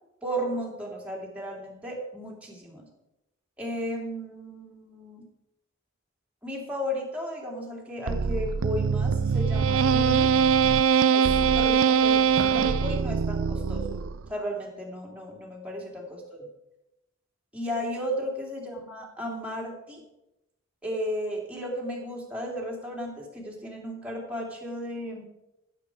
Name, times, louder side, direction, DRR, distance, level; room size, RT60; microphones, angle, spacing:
voice 1, 0.2-2.9 3.6-5.3 6.4-10.3 11.1-14.0 14.3-16.5 17.5-20.0 20.8-25.2, equal, 5° right, -2 dB, 2.7 m, -34 dB
sound 1, 8.1-14.3, right 6 dB, 75° right, 0.5 m, -22 dB
15.5 x 7.6 x 4.9 m, 0.90 s
head